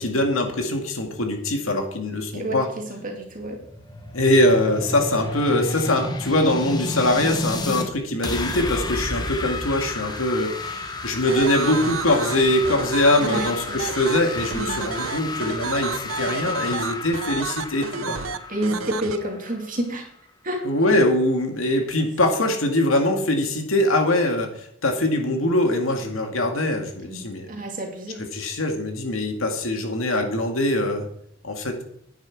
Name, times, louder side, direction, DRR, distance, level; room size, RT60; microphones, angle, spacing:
voice 1, 0.0-2.7 4.1-18.2 20.6-24.5 24.8-27.5 28.3-31.1 31.4-31.8, left 1 dB, 90° left, 4 dB, 2.1 m, -22 dB
voice 2, 2.3-3.6 13.2-13.5 14.5-14.9 18.5-20.0 20.4-20.6 27.1-28.2, right 1 dB, 40° right, 2 dB, 2.4 m, -29 dB
sound 1, 3.2-7.9 8.2-19.8, left 2 dB, 20° left, 1.1 m, -32 dB
sound 2, 11.3-19.2, right 5 dB, 85° right, 0.8 m, -31 dB
9.6 x 9.2 x 4.7 m, 0.71 s
head